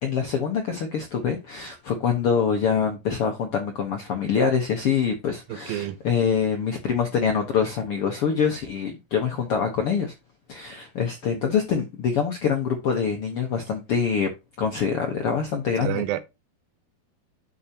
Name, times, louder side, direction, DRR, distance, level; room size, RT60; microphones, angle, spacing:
voice 1, 0.0-10.1 10.5-14.3 14.6-16.0, left 6 dB, 70° left, 1.4 m, -25 dB
voice 2, 5.5-6.0 15.8-16.2, right 13 dB, 80° right, 2.7 m, -28 dB
10.0 x 5.8 x 2.8 m
omnidirectional pair, 4.2 m